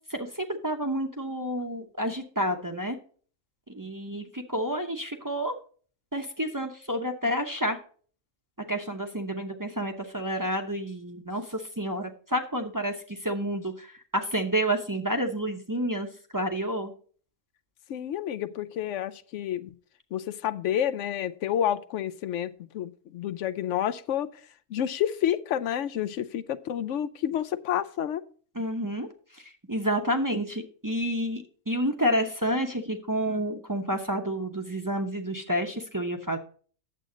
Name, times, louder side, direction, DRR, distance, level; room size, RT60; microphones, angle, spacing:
voice 1, 0.1-3.0 3.7-5.6 6.1-7.8 8.7-16.1 16.3-16.9 28.5-29.1 29.4-36.4, equal, 20° right, 3 dB, 0.8 m, -29 dB
voice 2, 17.9-19.7 20.1-24.3 24.7-28.2, left 10 dB, 80° left, 13 dB, 0.9 m, -29 dB
9.0 x 7.6 x 3.9 m, 0.43 s
omnidirectional pair, 1.2 m